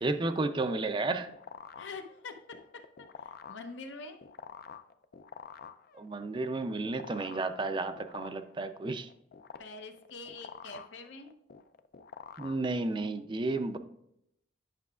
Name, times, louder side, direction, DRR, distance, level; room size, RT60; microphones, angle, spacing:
voice 1, 0.0-1.3 5.9-9.1 12.4-13.8, right 3 dB, 25° right, 9 dB, 0.4 m, -32 dB
sound 1, 0.8-13.2, left 6 dB, 55° left, 0.4 m, -49 dB
voice 2, 1.8-4.2 9.6-11.4, left 3 dB, 80° left, 6 dB, 0.8 m, -45 dB
9.2 x 5.8 x 2.4 m, 0.76 s
head